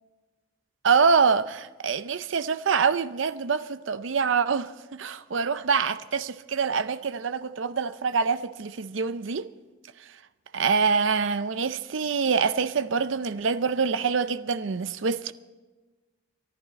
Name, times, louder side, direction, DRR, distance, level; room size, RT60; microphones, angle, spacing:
voice 1, 0.8-9.5 10.5-15.3, right 5 dB, 65° right, 0.6 m, -25 dB
24.5 x 11.5 x 4.1 m
head